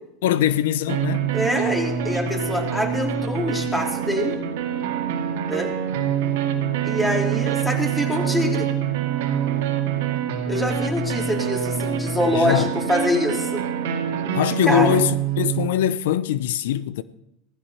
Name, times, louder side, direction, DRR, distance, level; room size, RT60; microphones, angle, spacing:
voice 1, 0.2-1.3 12.3-12.7 14.3-17.0, left 11 dB, 80° left, 0.6 m, -22 dB
sound 1, 0.9-15.7, right 8 dB, 75° right, 2.1 m, -25 dB
voice 2, 1.3-4.4 5.5-5.7 6.8-8.7 10.5-13.6 14.7-15.0, equal, 10° left, 3.5 m, -25 dB
17.0 x 14.5 x 4.4 m
hypercardioid pair, 100°, 0 cm